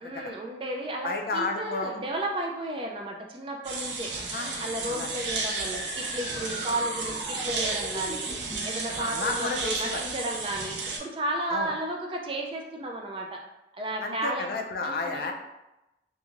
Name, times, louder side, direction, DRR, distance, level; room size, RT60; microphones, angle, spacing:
voice 1, 0.0-4.1 4.6-8.3 8.6-13.4 13.7-14.5 14.8-15.3, right 1 dB, 30° right, 1 dB, 0.3 m, -33 dB
voice 2, 1.0-2.0 4.2-5.1 8.9-10.0 11.5-11.7 14.0-15.3, left 3 dB, 55° left, 3 dB, 0.3 m, -32 dB
sound 1, 3.6-11.0, right 4 dB, 90° right, 0.5 m, -33 dB
sound 2, 5.2-8.8, equal, 25° left, 0.7 m, -39 dB
2.9 x 2.5 x 2.4 m, 0.95 s
head